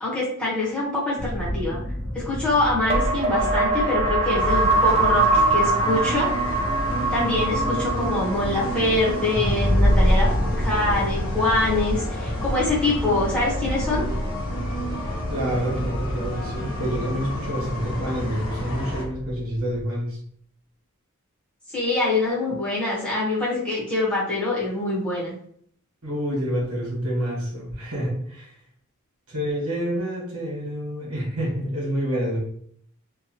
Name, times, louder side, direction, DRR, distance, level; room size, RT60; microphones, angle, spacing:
voice 1, 0.0-1.8 2.1-6.3 7.1-14.1 21.7-25.4, left 2 dB, 5° left, -7 dB, 0.9 m, -24 dB
sound 1, 1.2-18.4 18.7-19.2, right 1 dB, 25° right, 0.5 m, -25 dB
sound 2, 1.3-1.7 2.9-17.8, right 2 dB, 40° left, 0.5 m, -37 dB
sound 3, 4.3-19.0, left 1 dB, 75° left, 1.0 m, -32 dB
voice 2, 15.3-20.2 26.0-28.5 29.3-32.4, equal, 80° right, -4 dB, 1.4 m, -28 dB
2.9 x 2.2 x 2.8 m, 0.63 s
head